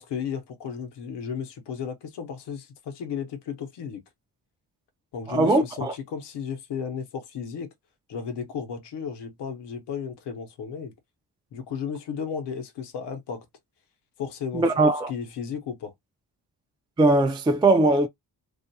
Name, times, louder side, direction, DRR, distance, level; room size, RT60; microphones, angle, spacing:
voice 1, 0.0-4.0 5.1-7.7 8.1-10.9 11.5-13.4 14.2-14.6 15.1-15.9, left 6 dB, 85° left, 0.8 m, -34 dB
voice 2, 5.3-5.9 14.5-15.1 17.0-18.1, right 2 dB, 15° right, 0.3 m, -20 dB
2.4 x 2.2 x 2.7 m
cardioid pair, 85°, 40 cm